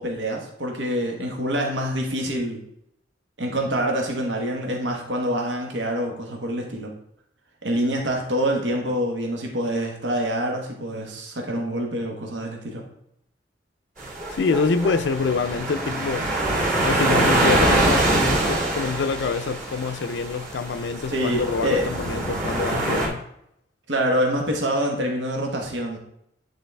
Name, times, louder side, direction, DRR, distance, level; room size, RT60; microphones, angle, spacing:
voice 1, 0.0-2.6 3.4-6.9 7.6-12.8 21.1-21.8 23.9-26.0, equal, 85° right, 1.1 m, -26 dB
sound 1, 14.0-23.1, right 1 dB, 45° right, 2.0 m, -24 dB
voice 2, 14.3-16.3 16.8-23.3, left 4 dB, 75° left, 0.4 m, -26 dB
9.2 x 3.9 x 3.3 m
head